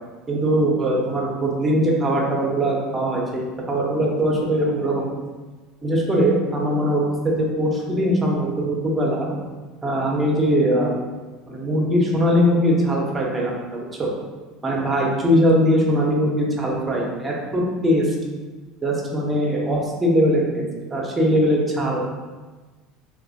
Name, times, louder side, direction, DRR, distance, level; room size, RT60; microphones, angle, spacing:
voice 1, 0.3-5.1 5.8-9.3 9.8-10.9 11.5-14.1 14.6-18.1 18.8-22.1, equal, 20° right, -2 dB, 0.8 m, -21 dB
3.1 x 2.9 x 2.6 m, 1.3 s
figure-of-eight pair, 70°, 0 cm